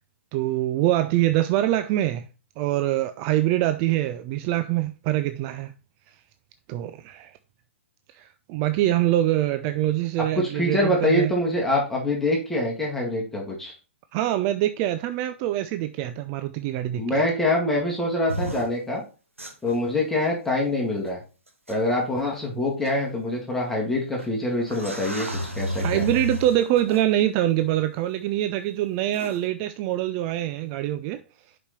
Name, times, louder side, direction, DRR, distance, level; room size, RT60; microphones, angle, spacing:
voice 1, 0.3-2.3 2.6-5.7 6.7-7.3 8.1-11.3 14.1-17.2 25.8-31.2, right 13 dB, 30° right, 0.4 m, -24 dB
voice 2, 10.4-13.7 17.0-19.0 19.6-21.2 21.7-25.3 25.6-26.1, left 1 dB, 5° left, 2.0 m, -25 dB
sound 1, 18.3-18.7 19.4-19.7 21.1-21.2 21.7-21.8 22.8-22.9 24.2-24.3 24.7-27.0 29.1-29.4, equal, 90° right, 1.8 m, -31 dB
7.1 x 5.2 x 4.3 m
figure-of-eight pair, 120°, 7 cm